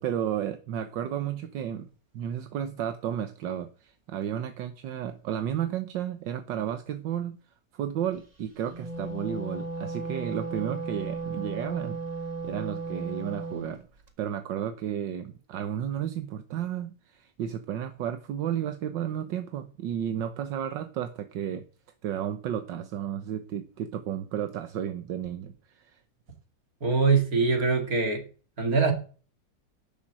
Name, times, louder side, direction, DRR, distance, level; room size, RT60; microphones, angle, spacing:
voice 1, 0.0-1.9 2.1-7.4 7.7-12.0 12.4-13.8 14.2-21.6 22.0-26.0, right 10 dB, 80° right, 9 dB, 1.7 m, -32 dB
Wind instrument woodwind instrument, 8.6-13.7, right 3 dB, 25° right, 1.8 m, -35 dB
voice 2, 26.8-28.2 28.6-28.9, right 4 dB, 50° right, 4 dB, 2.9 m, -23 dB
11.0 x 7.3 x 7.6 m, 0.37 s
omnidirectional pair, 2.0 m